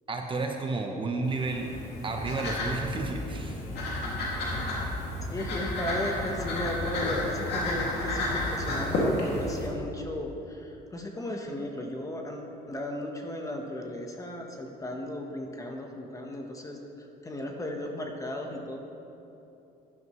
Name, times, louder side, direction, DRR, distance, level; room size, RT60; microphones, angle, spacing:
voice 1, 0.1-1.7 2.0-3.6, right 3 dB, 30° right, 3 dB, 0.9 m, -31 dB
sound 1, 1.2-9.7, left 1 dB, 80° left, 2.3 m, -31 dB
voice 2, 5.2-16.8 17.2-18.8, left 1 dB, 20° left, 2 dB, 1.1 m, -35 dB
11.5 x 11.0 x 3.1 m, 3.0 s
cardioid pair, 110°, 17 cm